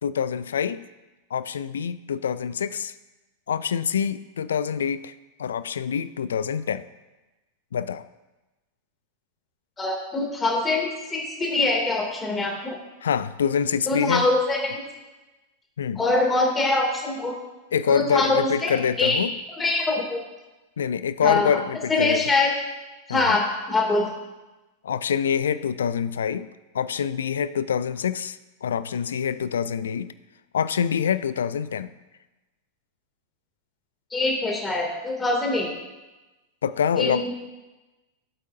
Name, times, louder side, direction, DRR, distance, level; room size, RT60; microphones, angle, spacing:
voice 1, 0.0-0.8 1.3-2.9 3.5-5.1 5.4-6.9 7.7-8.1 13.0-14.3 15.8-16.0 17.7-19.3 20.8-22.2 23.1-23.4 24.8-26.5 26.7-30.1 30.5-31.9 36.6-37.3, left 7 dB, 65° left, 15 dB, 0.4 m, -25 dB
voice 2, 9.8-12.8 13.9-14.8 16.0-17.3 17.9-18.7 19.0-19.2 19.6-20.2 21.2-21.5 21.9-22.5 23.1-23.4 23.7-24.1 34.1-35.7 37.0-37.3, left 2 dB, 15° left, 0 dB, 2.7 m, -23 dB
16.0 x 8.2 x 2.7 m, 1.1 s
figure-of-eight pair, 90°, 0 cm